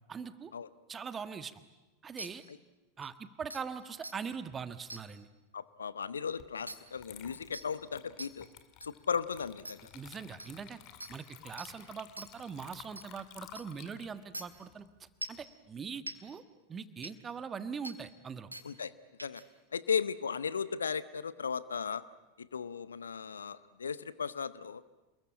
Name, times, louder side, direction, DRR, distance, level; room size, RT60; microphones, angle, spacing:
voice 1, 0.1-0.5 0.9-1.6 2.0-2.4 3.0-5.3 9.9-10.8 11.1-16.4 16.7-18.5, right 6 dB, 20° right, 12 dB, 1.5 m, -42 dB
sound 1, 2.2-2.3 3.0-3.1 3.5-3.6 4.0-4.1 4.9-5.0 6.7-6.8 7.5-7.7 8.2-8.3 8.8-8.9 9.7-9.8 10.4-10.5 11.0-11.1 11.6-11.7 12.2-12.3 13.0-13.1 13.6-13.7 14.3-14.4 15.2-15.4 16.1-16.2 17.0-17.1 17.8-18.0 18.5-18.7 19.2-19.4, right 2 dB, 85° right, 1.7 m, -42 dB
voice 2, 5.5-8.5 8.8-9.9 18.6-18.9 19.2-19.4 19.7-22.0 22.4-24.8, left 6 dB, 75° left, 17 dB, 0.8 m, -36 dB
Water / Liquid, 6.4-6.6 7.0-15.5, left 11 dB, 45° left, 2.1 m, -54 dB
28.0 x 21.5 x 8.8 m, 1.1 s
figure-of-eight pair, 85°, 0 cm